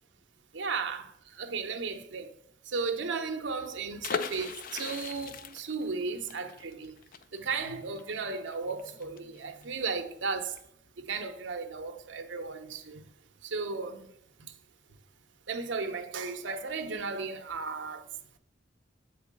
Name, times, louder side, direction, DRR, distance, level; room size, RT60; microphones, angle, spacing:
voice 1, 0.5-1.1 1.4-2.3 2.7-6.9 7.3-10.5 11.0-13.0 13.5-14.1 15.5-18.0, right 4 dB, 70° right, 0.7 m, -35 dB
sound 1, 4.0-9.7 9.9-10.0 10.3-10.6, left 6 dB, 45° left, 0.4 m, -39 dB
7.4 x 4.1 x 5.2 m
head